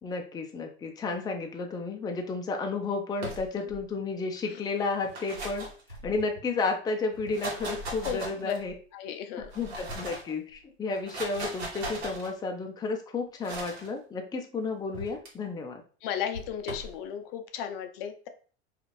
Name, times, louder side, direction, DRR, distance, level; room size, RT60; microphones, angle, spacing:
voice 1, 0.0-5.7 6.0-8.7 9.5-15.8, left 3 dB, 15° left, 4 dB, 0.4 m, -32 dB
sound 1, 3.2-3.8 4.9-6.4 7.1-8.8 9.4-10.3 10.9-12.3 13.4-13.9 14.9-15.3 16.3-16.9, right 1 dB, 80° right, 1.1 m, -38 dB
voice 2, 8.0-8.5 8.9-9.5 16.0-18.3, left 8 dB, 65° left, 7 dB, 0.5 m, -34 dB
2.5 x 2.4 x 3.1 m, 0.41 s
hypercardioid pair, 90°, 31 cm